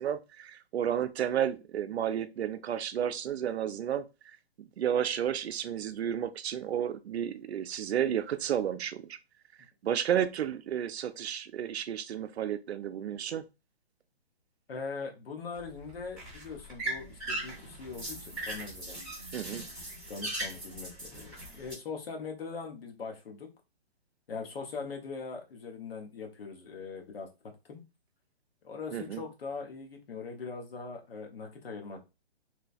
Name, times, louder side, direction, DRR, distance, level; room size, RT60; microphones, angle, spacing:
voice 1, 0.0-4.1 4.6-9.2 9.8-13.4 19.3-19.6 28.9-29.2, right 9 dB, 90° right, 0.5 m, -32 dB
voice 2, 14.7-19.0 19.4-19.8 20.1-23.5 24.3-27.3 27.7-27.8 28.6-32.0, left 4 dB, 65° left, 1.0 m, -41 dB
sound 1, 15.5-21.7, right 1 dB, ahead, 0.6 m, -39 dB
3.1 x 2.1 x 2.5 m
hypercardioid pair, 165°, 31 cm